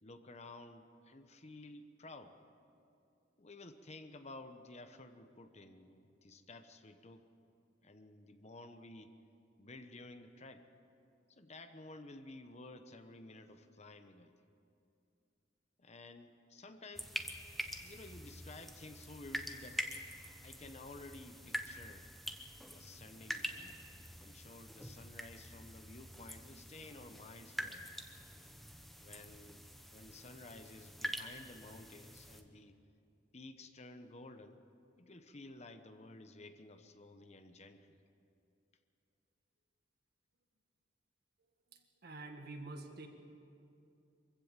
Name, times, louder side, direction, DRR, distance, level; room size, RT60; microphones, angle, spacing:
voice 1, 0.0-2.4 3.4-7.2 7.8-9.2 9.6-10.7 11.3-14.3 15.8-17.2 17.8-19.8 20.4-22.1 22.7-23.8 24.2-27.9 29.0-29.6 29.9-32.8 33.3-34.6 35.0-38.0, left 2 dB, 35° left, 8 dB, 1.0 m, -53 dB
sound 1, 17.0-32.4, equal, ahead, 1.1 m, -46 dB
voice 2, 41.7-43.1, right 2 dB, 55° right, 4 dB, 1.9 m, -48 dB
24.0 x 15.5 x 7.5 m, 2.6 s
head